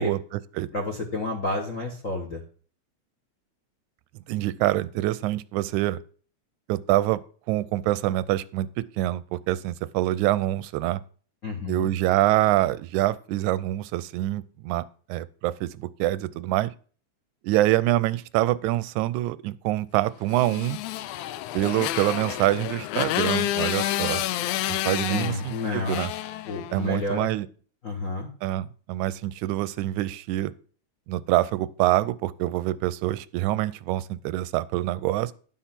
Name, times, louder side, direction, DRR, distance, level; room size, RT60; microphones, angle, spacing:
voice 1, 0.0-0.7 4.3-6.0 6.7-7.2 7.5-11.0 11.7-14.8 15.1-16.7 17.4-20.8 21.5-24.2 24.7-26.1 26.7-27.5 28.4-30.5 31.1-35.3, right 15 dB, 90° right, 2.0 m, -25 dB
voice 2, 0.7-2.4 11.4-11.9 25.1-26.0 26.4-27.3 27.8-28.3, left 2 dB, 50° left, 1.0 m, -30 dB
Motorcycle, 20.3-27.0, left 14 dB, 85° left, 2.0 m, -29 dB
11.0 x 5.7 x 5.8 m
omnidirectional pair, 3.3 m